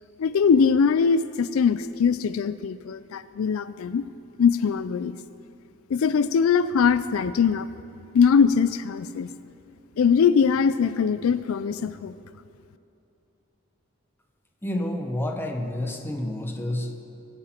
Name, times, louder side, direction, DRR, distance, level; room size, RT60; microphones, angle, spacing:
voice 1, 0.2-4.0 4.4-5.2 5.9-7.7 8.1-9.3 10.0-12.1, left 6 dB, 75° left, 14 dB, 0.4 m, -21 dB
voice 2, 14.6-17.0, left 1 dB, 10° left, 3 dB, 1.0 m, -29 dB
24.0 x 8.7 x 4.4 m, 2.7 s
head